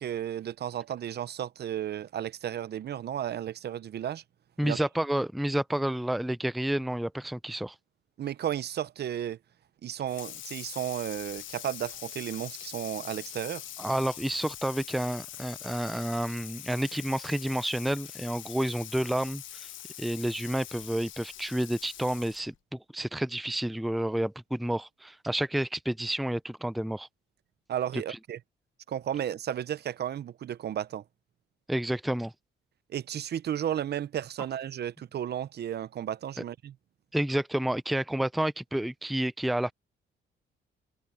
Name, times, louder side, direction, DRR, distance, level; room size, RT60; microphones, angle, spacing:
voice 1, 0.0-4.2 4.6-4.8 8.2-9.4 9.8-13.6 27.7-28.4 28.9-31.0 32.9-36.7, right 10 dB, 55° right, 0.7 m, -33 dB
voice 2, 4.6-7.7 13.8-19.7 20.0-27.1 31.7-32.3 37.1-39.7, right 1 dB, ahead, 0.5 m, -30 dB
Water tap faucet / Sink (filling or washing), 10.1-22.6, left 12 dB, 75° left, 1.2 m, -43 dB
cardioid pair, 90°, 20 cm